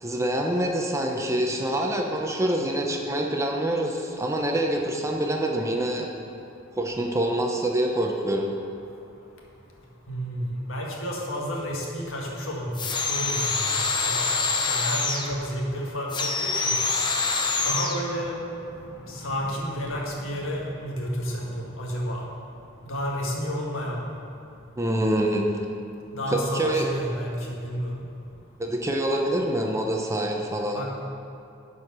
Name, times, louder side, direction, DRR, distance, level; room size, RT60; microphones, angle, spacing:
voice 1, 0.0-6.1 6.8-8.5 24.8-25.5 26.3-26.9 28.6-30.9, right 1 dB, 15° right, 1 dB, 0.7 m, -26 dB
voice 2, 10.1-22.3 22.8-24.0 26.1-28.0 30.7-30.9, equal, 75° left, -2 dB, 1.6 m, -31 dB
sound 1, 12.7-15.3 16.1-18.0, left 4 dB, 20° left, 0.6 m, -25 dB
10.0 x 4.9 x 6.0 m, 2.7 s
head